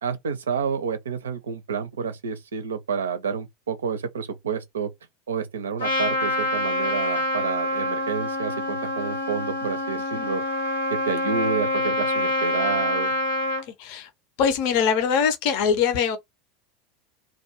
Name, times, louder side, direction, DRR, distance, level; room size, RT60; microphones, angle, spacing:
voice 1, 0.0-4.9 5.3-10.4 10.9-13.1, right 6 dB, 80° right, 0.5 m, -29 dB
Trumpet, 5.8-13.6, left 1 dB, 90° left, 1.0 m, -26 dB
voice 2, 13.8-14.1 14.4-16.2, left 7 dB, 60° left, 0.6 m, -22 dB
2.3 x 2.2 x 2.7 m
hypercardioid pair, 80°, 0 cm